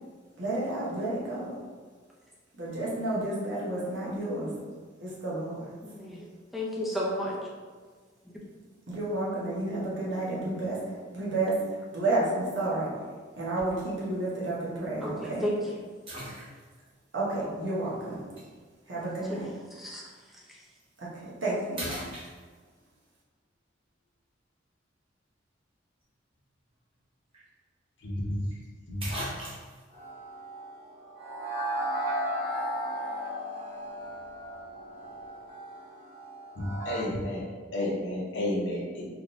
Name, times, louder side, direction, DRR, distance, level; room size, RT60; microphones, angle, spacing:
voice 1, 0.4-1.5 2.6-4.5 5.0-5.7 8.9-10.8 11.1-11.6 11.9-12.9 13.4-15.5 17.1-18.2 18.9-19.5 21.0-21.9, right 2 dB, 80° right, -6 dB, 1.1 m, -31 dB
voice 2, 5.8-7.4 15.0-15.8 19.3-19.4 19.7-20.1 20.5-20.6, equal, ahead, -4 dB, 0.5 m, -33 dB
sound 1, 13.6-13.9 14.5-14.6 16.1-16.9 18.4-18.5 20.6-20.8 21.3-21.4 21.7-22.8 26.9-27.0 27.3-27.4 28.5-28.6 29.0-29.9, equal, 30° right, 0.8 m, -39 dB
voice 3, 28.0-28.4 28.9-29.0 36.6-37.5 37.7-39.1, left 1 dB, 70° left, -3 dB, 0.8 m, -31 dB
sound 2, 29.9-37.0, equal, 65° right, 1.4 m, -35 dB
3.6 x 2.8 x 2.5 m, 1.5 s
head